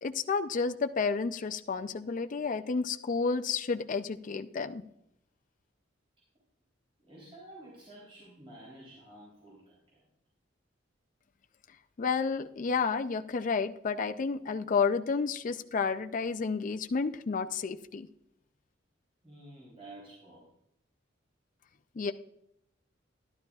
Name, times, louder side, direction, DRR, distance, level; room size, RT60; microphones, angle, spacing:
voice 1, 0.0-4.8 12.0-18.1 22.0-22.1, left 5 dB, 45° left, 9 dB, 0.4 m, -31 dB
voice 2, 7.0-10.0 19.2-20.5, right 1 dB, 30° right, -5 dB, 3.4 m, -51 dB
12.0 x 11.5 x 2.4 m, 0.77 s
head